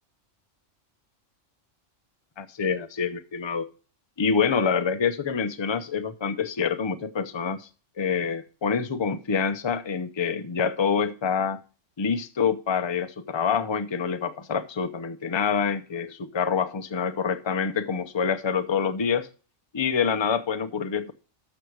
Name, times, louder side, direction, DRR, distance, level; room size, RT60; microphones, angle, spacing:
voice 1, 2.4-3.7 4.2-7.7 8.0-11.6 12.0-19.3 19.7-21.1, left 6 dB, 30° left, 0.6 m, -26 dB
13.0 x 6.5 x 4.6 m
omnidirectional pair, 1.3 m